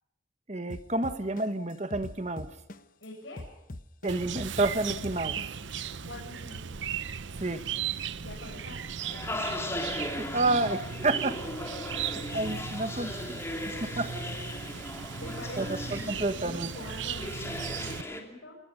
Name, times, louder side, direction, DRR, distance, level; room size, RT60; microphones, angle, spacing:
voice 1, 0.5-2.5 4.0-5.4 7.4-7.6 10.2-11.4 11.9-13.4 13.7-14.1 15.6-15.7 16.1-16.7, right 2 dB, 35° right, 9 dB, 1.5 m, -30 dB
sound 1, 0.7-3.0 3.4-5.7, left 1 dB, 45° left, 1.0 m, -41 dB
voice 2, 3.0-3.4 6.0-6.6 8.2-8.8 9.1-10.1 12.9-13.0 15.2-18.6, left 2 dB, 70° left, -2 dB, 7.7 m, -45 dB
Chirp tweet, 4.1-18.0, right 7 dB, 75° right, 0.8 m, -37 dB
sound 2, 9.0-18.2, left 1 dB, 15° left, 2.7 m, -38 dB
27.5 x 20.5 x 5.3 m, 0.86 s
head